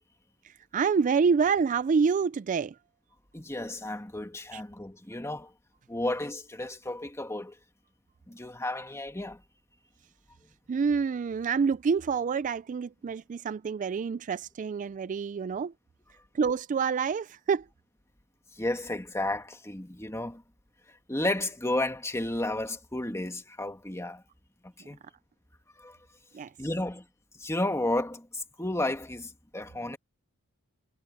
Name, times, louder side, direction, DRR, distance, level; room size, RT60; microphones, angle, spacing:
voice 1, 0.4-2.8 4.5-4.6 10.7-15.7 16.3-17.7 26.3-26.5, right 5 dB, 35° right, 0.3 m, -27 dB
voice 2, 3.3-5.5 5.9-7.5 8.3-9.4 18.6-20.4 21.1-24.2 24.9-25.0 25.8-26.0 26.6-27.0 27.4-30.0, left 1 dB, 15° left, 2.0 m, -32 dB
head